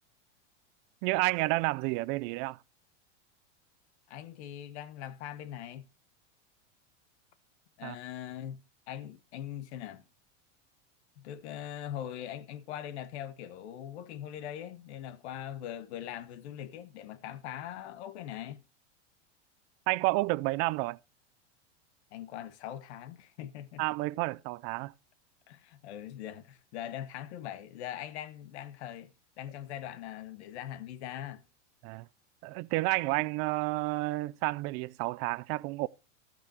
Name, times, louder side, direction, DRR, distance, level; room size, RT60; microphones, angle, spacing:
voice 1, 1.0-2.6 7.8-8.0 19.9-21.0 23.8-24.9 31.8-32.1 32.4-35.9, right 21 dB, 40° right, 0.5 m, -30 dB
voice 2, 4.1-5.9 7.8-10.0 11.2-18.6 22.1-23.8 25.5-31.4, left 11 dB, 65° left, 1.4 m, -41 dB
13.5 x 8.7 x 2.9 m
supercardioid pair, 125°, 35 cm